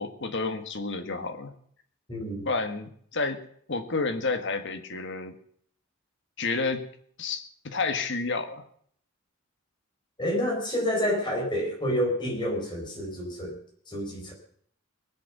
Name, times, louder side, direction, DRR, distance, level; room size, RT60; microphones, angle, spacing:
voice 1, 0.0-1.5 2.4-3.4 3.7-5.3 6.4-6.8 7.2-8.6, left 3 dB, 55° left, 6 dB, 1.6 m, -30 dB
voice 2, 2.1-2.5 10.2-13.6 13.9-14.3, equal, 20° left, 0 dB, 4.6 m, -28 dB
21.0 x 8.3 x 6.8 m, 0.62 s
head